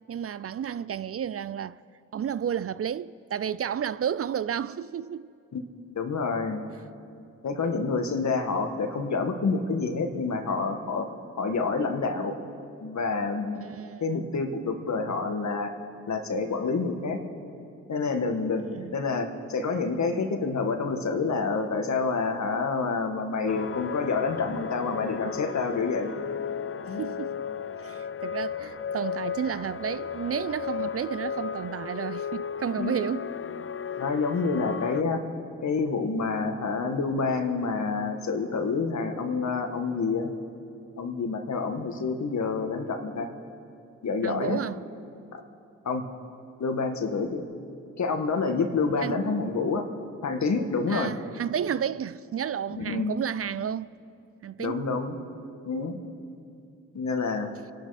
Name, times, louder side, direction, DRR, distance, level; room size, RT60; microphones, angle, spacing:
voice 1, 0.1-1.8 2.1-5.3 13.6-14.3 18.6-19.0 27.0-27.5 27.8-33.3 44.2-44.8 49.0-49.2 50.9-53.9 54.4-54.8, right 8 dB, 45° right, 0.5 m, -32 dB
voice 2, 6.0-6.6 7.4-11.1 11.4-12.3 12.8-13.6 14.0-15.7 16.1-17.2 17.9-18.7 18.9-26.1 26.9-27.0 32.8-33.0 34.0-35.2 35.6-40.3 41.0-43.3 44.0-44.6 45.3-45.4 45.9-46.0 46.6-47.4 48.0-49.9 50.2-51.1 52.8-53.1 54.6-55.2 55.7-56.0 56.9-57.5, left 4 dB, 60° left, 1.9 m, -28 dB
sound 1, 23.5-35.0, left 7 dB, 40° left, 0.7 m, -34 dB
28.0 x 12.0 x 4.3 m
supercardioid pair, 45°, 32 cm